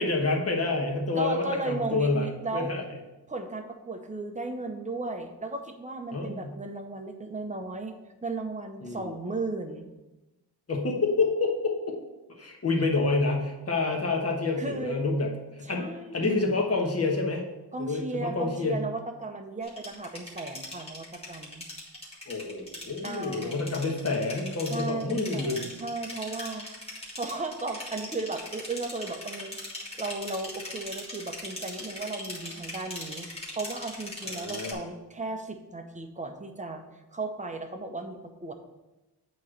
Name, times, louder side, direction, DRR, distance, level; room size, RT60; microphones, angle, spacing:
voice 1, 0.0-2.8 6.1-6.5 8.8-9.1 10.7-12.0 12.3-17.4 17.8-18.8 22.3-25.7 34.2-34.8, left 3 dB, 35° left, 1 dB, 1.2 m, -28 dB
voice 2, 1.1-2.7 3.3-7.9 8.2-9.9 14.6-15.0 15.6-16.3 17.7-21.6 23.0-23.7 24.7-26.7 27.2-29.6 30.0-36.8 37.1-38.5, right 3 dB, 20° right, 5 dB, 0.7 m, -35 dB
sound 1, 19.6-34.7, left 1 dB, 15° left, 1.7 m, -40 dB
8.4 x 3.1 x 6.4 m, 1.0 s
wide cardioid pair, 140°, 41 cm